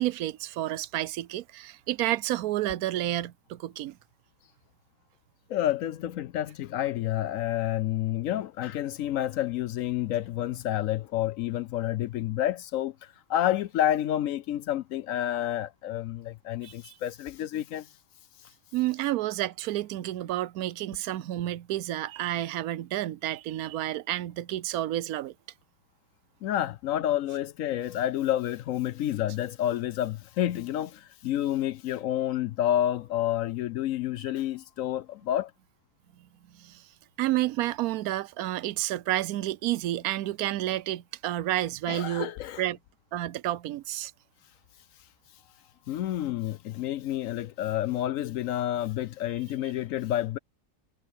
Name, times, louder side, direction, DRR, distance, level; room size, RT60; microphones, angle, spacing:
voice 1, 0.0-4.0 16.6-16.9 18.7-25.3 36.6-36.8 37.2-42.3 42.6-42.8 43.1-44.1, right 14 dB, 80° right, 1.1 m, -30 dB
voice 2, 5.5-17.9 26.4-35.5 41.9-42.6 45.9-50.4, left 12 dB, 70° left, 0.9 m, -29 dB
omnidirectional pair, 1.6 m